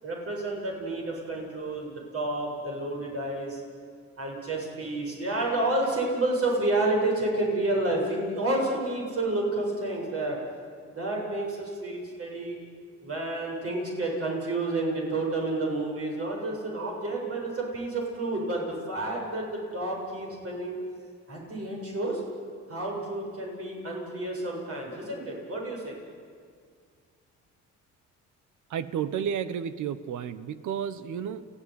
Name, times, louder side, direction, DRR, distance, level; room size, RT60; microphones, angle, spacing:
voice 1, 0.0-3.6 4.2-10.4 10.9-12.6 13.0-20.8 21.3-22.2 22.7-26.0, right 2 dB, 50° right, -1 dB, 7.7 m, -30 dB
voice 2, 28.7-31.5, right 8 dB, 75° right, 14 dB, 1.2 m, -32 dB
29.0 x 16.0 x 9.6 m, 2.1 s
cardioid pair, 90°, 30 cm